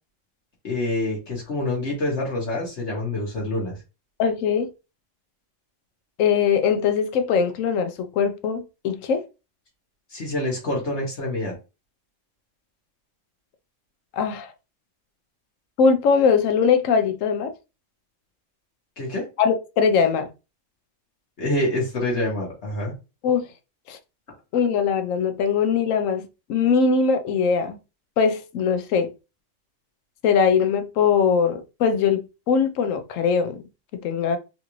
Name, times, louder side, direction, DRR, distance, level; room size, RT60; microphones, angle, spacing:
voice 1, 0.6-3.7 10.1-11.5 19.0-19.3 21.4-22.9, left 1 dB, 65° left, 1.4 m, -26 dB
voice 2, 4.2-4.7 6.2-9.3 14.1-14.5 15.8-17.5 19.4-20.3 23.2-23.5 23.9-24.0 24.5-27.8 28.2-29.1 30.2-33.6 34.0-34.4, left 6 dB, 85° left, 1.0 m, -21 dB
3.8 x 2.4 x 2.9 m
omnidirectional pair, 1.3 m